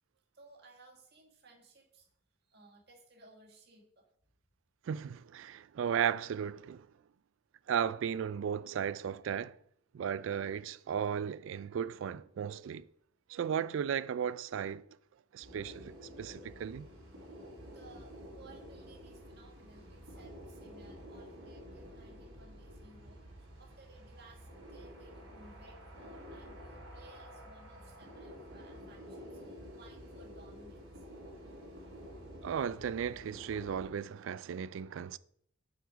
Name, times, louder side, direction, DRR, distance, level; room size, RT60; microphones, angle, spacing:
voice 1, 0.3-2.1 2.4-4.1 17.7-31.0, right 2 dB, 50° right, 1.7 m, -59 dB
voice 2, 4.8-6.9 7.7-9.6 9.9-12.9 13.3-14.9 15.3-16.9 32.4-35.2, right 8 dB, 65° right, 0.3 m, -35 dB
sound 1, 15.4-33.9, equal, 85° right, 3.5 m, -50 dB
7.4 x 5.8 x 4.9 m
head